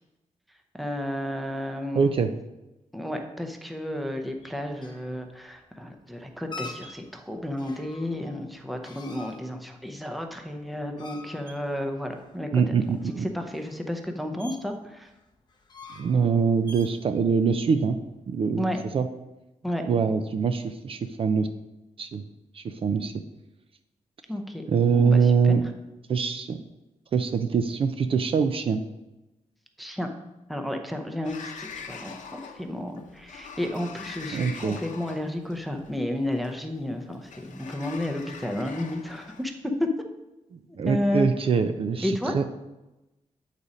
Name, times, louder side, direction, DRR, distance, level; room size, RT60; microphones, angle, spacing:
voice 1, 0.8-2.1 2.9-12.7 13.2-15.1 18.6-18.8 19.6-19.9 24.3-24.6 24.9-25.6 29.8-30.1 30.5-39.9 40.8-41.3 42.0-42.3, left 1 dB, ahead, 4 dB, 0.6 m, -32 dB
voice 2, 1.9-2.3 12.5-13.3 16.0-18.0 18.3-19.1 19.9-21.5 22.0-22.2 22.5-23.1 24.7-25.7 26.1-26.6 27.1-28.8 34.3-34.8 40.5-42.4, right 5 dB, 45° right, 8 dB, 0.4 m, -24 dB
sound 1, 4.0-18.9, left 3 dB, 35° left, 0.8 m, -47 dB
Sliding door, 31.2-39.4, left 5 dB, 80° left, 0.7 m, -43 dB
8.4 x 4.1 x 5.0 m, 1.0 s
wide cardioid pair, 160°, 13 cm